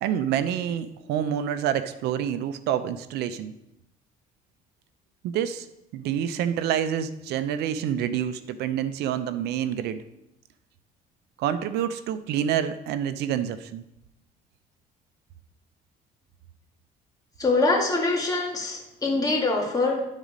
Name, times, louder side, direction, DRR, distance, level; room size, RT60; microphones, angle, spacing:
voice 1, 0.0-3.5 5.2-5.7 5.9-10.0 11.4-13.8, right 9 dB, 80° right, 12 dB, 0.6 m, -27 dB
voice 2, 17.4-20.1, left 3 dB, 20° left, 0 dB, 1.8 m, -24 dB
11.0 x 4.1 x 5.0 m, 0.88 s
cardioid pair, 110°, 17 cm